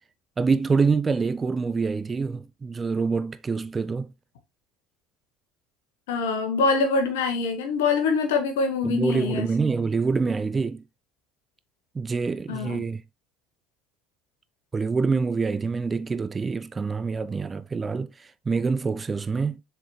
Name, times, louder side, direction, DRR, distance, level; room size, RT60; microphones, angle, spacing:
voice 1, 0.4-4.1 8.8-10.8 11.9-13.0 14.7-19.6, right 4 dB, 25° right, 0.5 m, -26 dB
voice 2, 6.1-9.5 12.5-12.8, left 4 dB, 70° left, 1.6 m, -24 dB
7.3 x 4.6 x 3.1 m
figure-of-eight pair, 60°, 0 cm